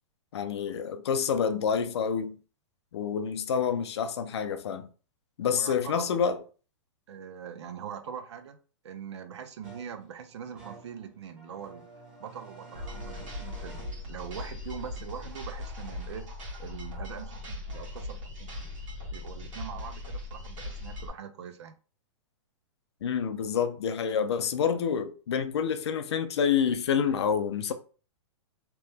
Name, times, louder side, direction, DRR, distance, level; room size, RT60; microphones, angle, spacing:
voice 1, 0.3-2.4 2.9-4.9 5.4-6.4 23.0-27.7, left 7 dB, 60° left, 0.4 m, -28 dB
voice 2, 5.5-6.3 7.1-8.6 8.8-11.9 12.2-16.3 16.6-18.7 19.1-21.7, right 8 dB, 60° right, 0.5 m, -42 dB
sound 1, 9.6-16.2, right 3 dB, 5° right, 0.6 m, -51 dB
sound 2, 12.7-21.1, left 2 dB, 85° right, 1.4 m, -39 dB
2.9 x 2.1 x 3.3 m
hypercardioid pair, 180°, 16 cm